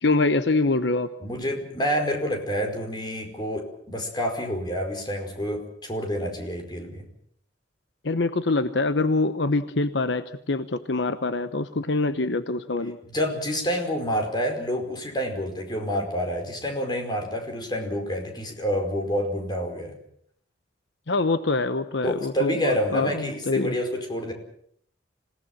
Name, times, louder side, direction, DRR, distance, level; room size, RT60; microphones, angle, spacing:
voice 1, 0.0-1.1 8.0-13.0 21.1-23.8, left 3 dB, 70° left, 11 dB, 1.0 m, -25 dB
voice 2, 1.2-7.0 13.1-20.0 22.0-24.3, equal, 25° left, 4 dB, 5.1 m, -28 dB
27.0 x 17.5 x 7.6 m, 0.66 s
head